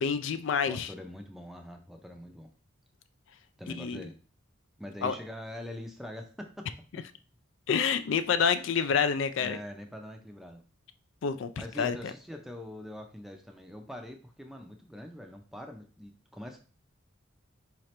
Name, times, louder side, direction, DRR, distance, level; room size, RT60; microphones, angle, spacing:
voice 1, 0.0-0.9 3.7-4.1 5.0-5.1 7.7-9.6 11.2-11.5 11.8-12.0, left 6 dB, 65° left, 11 dB, 0.3 m, -27 dB
voice 2, 0.6-2.5 3.6-4.2 4.8-6.7 6.9-7.0 9.4-10.6 11.6-16.6, left 1 dB, ahead, 3 dB, 0.5 m, -43 dB
4.8 x 2.9 x 3.2 m, 0.39 s
head